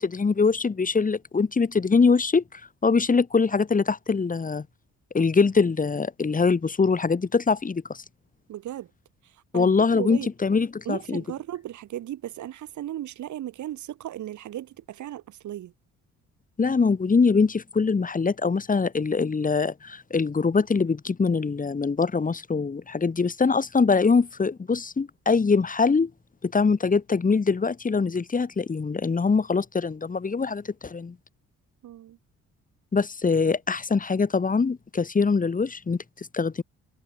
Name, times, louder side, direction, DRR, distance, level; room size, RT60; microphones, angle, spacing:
voice 1, 0.0-4.7 5.1-8.0 9.5-11.2 16.6-26.1 26.4-31.2 32.9-36.6, left 4 dB, 25° left, 1.9 m, -23 dB
voice 2, 8.5-8.9 9.5-10.3 10.9-15.7 31.8-32.2, right 12 dB, 75° right, 2.4 m, -36 dB
cardioid pair, 90°, 30 cm